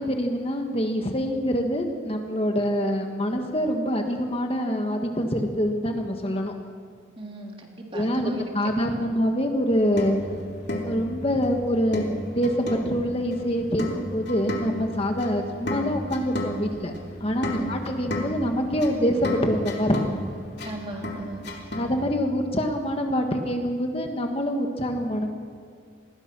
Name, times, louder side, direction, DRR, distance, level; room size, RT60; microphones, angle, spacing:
voice 1, 0.0-6.5 7.9-10.2 10.9-16.9 17.2-20.0 21.8-25.3, equal, 30° left, 4 dB, 1.5 m, -25 dB
voice 2, 7.2-8.4 8.9-9.0 17.5-17.7 20.6-21.4, right 1 dB, 25° right, 1 dB, 2.9 m, -36 dB
sound 1, 9.7-22.0, left 1 dB, 55° left, 3.2 m, -33 dB
26.5 x 21.0 x 6.1 m, 2.1 s
head